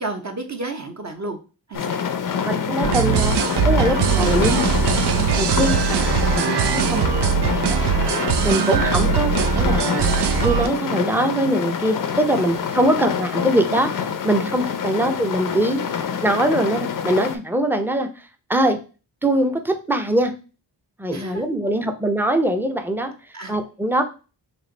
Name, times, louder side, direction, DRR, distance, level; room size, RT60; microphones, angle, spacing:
voice 1, 0.0-1.4 1.7-2.0 3.9-4.2 12.3-12.5 14.4-14.6 21.1-21.4 23.3-23.6, right 2 dB, 35° right, 4 dB, 0.8 m, -32 dB
sound 1, 1.7-17.4, left 7 dB, 45° left, 0.6 m, -26 dB
voice 2, 2.3-3.4 3.6-4.6 5.4-7.8 8.4-15.8 16.2-18.8 19.2-20.3 21.0-23.1 23.5-24.0, right 1 dB, 5° right, 6 dB, 0.6 m, -22 dB
sound 2, 2.8-10.7, right 8 dB, 60° right, 0.5 m, -21 dB
3.2 x 2.5 x 3.9 m, 0.34 s
cardioid pair, 55°, 47 cm